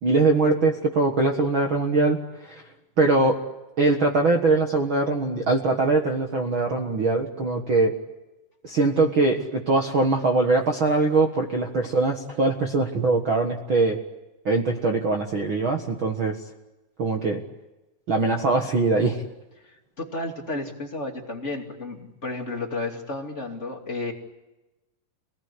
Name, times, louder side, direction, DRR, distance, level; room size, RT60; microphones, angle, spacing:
voice 1, 0.0-2.6 3.0-3.4 3.8-7.9 8.6-14.0 14.4-16.4 17.0-17.4 18.1-19.2, right 3 dB, 55° right, 3 dB, 1.4 m, -22 dB
voice 2, 20.0-24.1, left 2 dB, 20° left, 1 dB, 2.3 m, -32 dB
27.0 x 19.0 x 9.9 m, 1.0 s
omnidirectional pair, 4.7 m